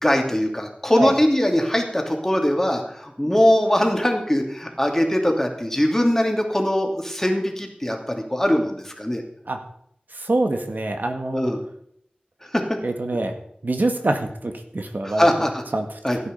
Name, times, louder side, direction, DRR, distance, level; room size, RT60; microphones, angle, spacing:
voice 1, 0.0-9.2 11.3-11.6 12.5-12.6 15.0-15.6 16.0-16.2, equal, 15° left, 2 dB, 2.9 m, -21 dB
voice 2, 10.1-11.5 12.8-13.3 13.6-15.3 15.7-15.9, right 2 dB, 80° right, 5 dB, 1.9 m, -24 dB
15.5 x 9.4 x 5.4 m, 0.69 s
wide cardioid pair, 55°, 3 cm